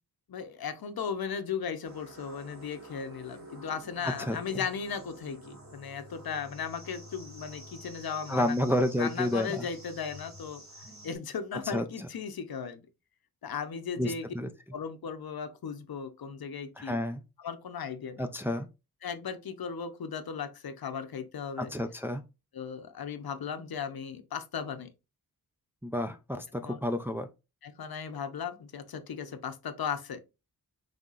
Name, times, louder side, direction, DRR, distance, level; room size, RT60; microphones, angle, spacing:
voice 1, 0.3-8.6 9.0-10.6 11.0-12.9 13.4-14.3 14.7-17.0 17.4-18.3 19.0-21.7 22.5-24.9 26.6-26.8 27.6-30.2, left 6 dB, 70° left, 0.8 m, -36 dB
sound 1, 1.8-11.2, right 1 dB, 45° right, 2.3 m, -49 dB
voice 2, 4.0-4.6 8.3-9.7 11.6-11.8 14.0-14.5 16.8-17.2 18.2-18.7 21.6-22.2 25.8-27.3, left 1 dB, 5° right, 0.4 m, -30 dB
5.5 x 3.5 x 2.5 m
wide cardioid pair, 90°, 38 cm